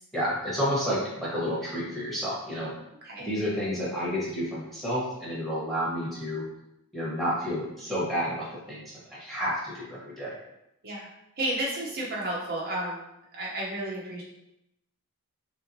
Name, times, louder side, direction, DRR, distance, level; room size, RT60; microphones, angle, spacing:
voice 1, 0.1-2.7 3.2-6.4 6.9-10.3, equal, ahead, -8 dB, 1.0 m, -30 dB
voice 2, 11.4-13.0 13.3-14.2, right 1 dB, 45° right, -5 dB, 0.6 m, -32 dB
3.3 x 2.9 x 2.6 m, 0.85 s
head